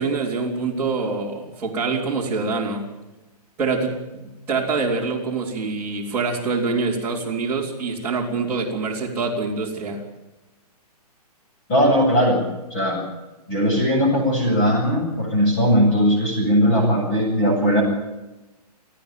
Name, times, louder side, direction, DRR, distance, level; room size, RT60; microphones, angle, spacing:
voice 1, 0.0-2.9 3.6-10.0, right 4 dB, 10° right, -7 dB, 3.6 m, -25 dB
voice 2, 11.7-13.0 13.5-17.8, equal, 20° left, -1 dB, 7.5 m, -19 dB
29.5 x 10.0 x 9.2 m, 1.0 s
hypercardioid pair, 180°, 20 cm